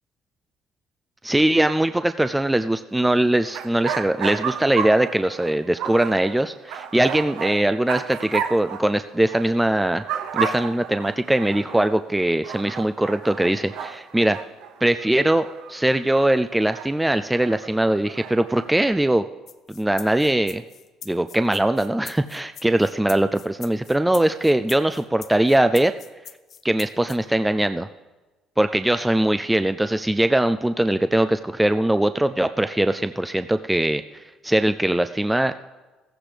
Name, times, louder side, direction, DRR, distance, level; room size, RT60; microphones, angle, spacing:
voice 1, 1.2-10.0 10.3-14.4 14.8-19.2 19.8-20.6 21.1-25.9 26.6-27.9 28.6-34.0 34.4-35.5, right 1 dB, 5° right, 9 dB, 0.3 m, -21 dB
sound 1, 3.0-3.1 3.4-9.6 9.8-12.0 12.4-16.3 16.6-18.9, right 7 dB, 75° right, 0.7 m, -33 dB
sound 2, 19.5-27.2, left 8 dB, 50° left, 0.7 m, -42 dB
15.5 x 15.0 x 3.3 m, 1.2 s
cardioid pair, 120°, 0 cm